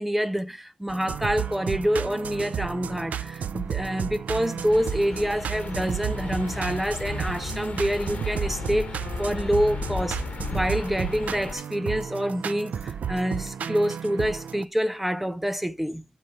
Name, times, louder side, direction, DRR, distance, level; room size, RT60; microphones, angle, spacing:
voice 1, 0.0-10.2 10.5-16.0, equal, 10° right, 0.7 m, -27 dB
sound 1, 0.9-14.6, right 8 dB, 90° right, 0.6 m, -33 dB
sound 2, 4.7-11.5, left 5 dB, 65° left, 1.3 m, -35 dB
13.5 x 4.8 x 4.7 m
wide cardioid pair, 115°, 2 cm